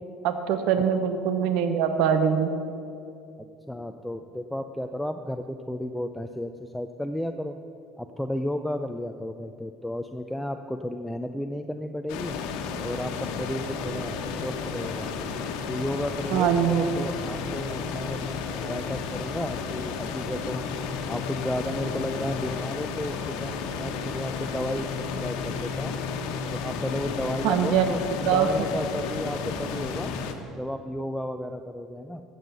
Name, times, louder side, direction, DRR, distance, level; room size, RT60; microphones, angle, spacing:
voice 1, 0.2-2.5 16.3-16.9 27.4-27.9 28.3-28.5, right 8 dB, 75° right, 9 dB, 0.9 m, -23 dB
voice 2, 3.7-7.6 8.0-12.4 12.8-15.1 15.7-20.6 21.1-26.0 26.5-30.1 30.6-32.2, left 1 dB, 5° left, 7 dB, 0.5 m, -33 dB
sound 1, 12.1-30.3, left 5 dB, 80° left, 1.2 m, -32 dB
13.5 x 7.8 x 6.8 m, 2.6 s
cardioid pair, 120°, 0 cm